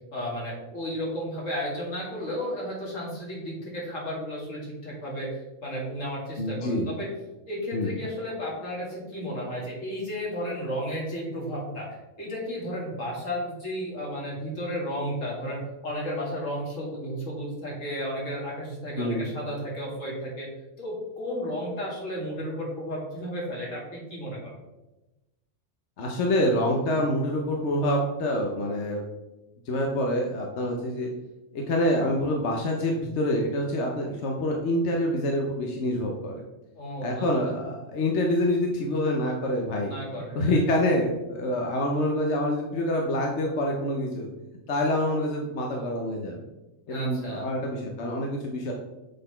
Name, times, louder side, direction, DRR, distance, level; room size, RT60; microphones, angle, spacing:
voice 1, 0.1-7.1 7.5-11.9 12.2-20.5 20.8-24.5 36.8-37.6 39.9-40.6 46.9-47.5, equal, 80° left, -4 dB, 2.6 m, -33 dB
voice 2, 6.4-6.9 7.7-7.9 19.0-19.2 26.0-29.0 29.7-31.1 31.5-36.4 37.0-39.9 40.3-44.3 44.7-46.4 46.9-48.7, left 1 dB, 65° left, 0 dB, 1.1 m, -26 dB
6.6 x 4.1 x 5.5 m, 1.0 s
omnidirectional pair, 1.3 m